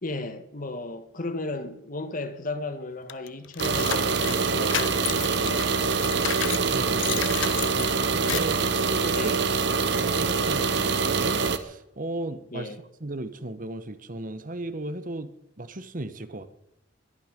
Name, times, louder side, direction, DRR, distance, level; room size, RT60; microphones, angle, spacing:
voice 1, 0.0-6.3 9.1-9.4 12.5-12.8, left 2 dB, 45° left, 1.5 m, -35 dB
sound 1, 3.1-6.7 7.0-8.6, left 10 dB, 85° left, 0.6 m, -32 dB
sound 2, 3.6-11.6, right 4 dB, 65° right, 1.3 m, -25 dB
voice 2, 6.6-9.3 9.8-12.7 13.0-15.3 15.6-16.5, right 2 dB, 45° right, 1.2 m, -36 dB
21.5 x 11.5 x 5.2 m
head